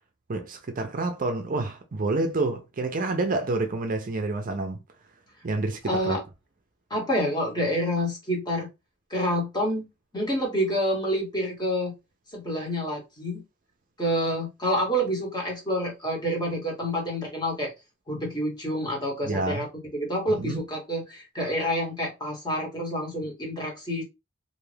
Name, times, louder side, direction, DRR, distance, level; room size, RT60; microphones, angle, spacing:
voice 1, 0.3-4.8 5.4-6.2 19.2-19.6 20.3-20.6, right 2 dB, 40° right, 0.5 m, -28 dB
voice 2, 5.8-6.2 6.9-8.7 9.1-9.8 10.1-11.9 12.3-13.4 14.0-17.7 18.1-19.7 19.9-24.0, equal, 20° left, 1.2 m, -28 dB
2.6 x 2.4 x 3.2 m
head